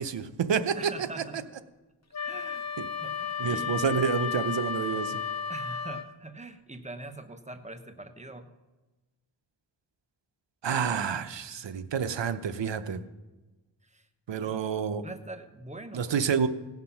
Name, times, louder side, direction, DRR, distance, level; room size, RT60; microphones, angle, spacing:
voice 1, 0.0-1.1 2.8-2.9 3.4-5.2 10.6-13.0 14.3-15.0 15.9-16.5, right 7 dB, 70° right, 12 dB, 0.8 m, -28 dB
voice 2, 0.8-1.5 2.2-2.7 3.0-3.8 5.5-8.5 13.8-14.1 14.4-14.6 15.0-16.3, right 2 dB, 15° right, 8 dB, 1.1 m, -43 dB
Wind instrument woodwind instrument, 2.1-6.1, left 7 dB, 35° left, 1.0 m, -33 dB
17.0 x 5.9 x 5.8 m, 1.2 s
cardioid pair, 55°, 44 cm